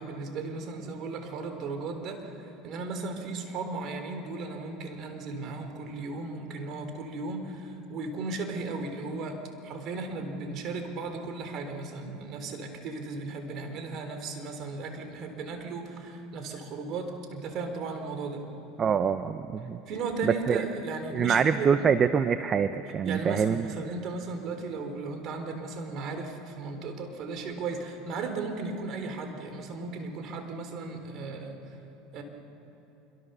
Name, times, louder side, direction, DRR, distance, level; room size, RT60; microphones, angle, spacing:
voice 1, 0.0-2.3 2.6-9.4 9.6-18.4 19.9-21.9 23.0-31.6 32.1-32.2, right 3 dB, 50° right, 6 dB, 3.7 m, -36 dB
voice 2, 18.8-19.8 20.2-20.6 21.1-23.7, right 7 dB, 35° right, 11 dB, 0.8 m, -25 dB
26.0 x 23.5 x 6.9 m, 2.9 s
supercardioid pair, 100°, 0 cm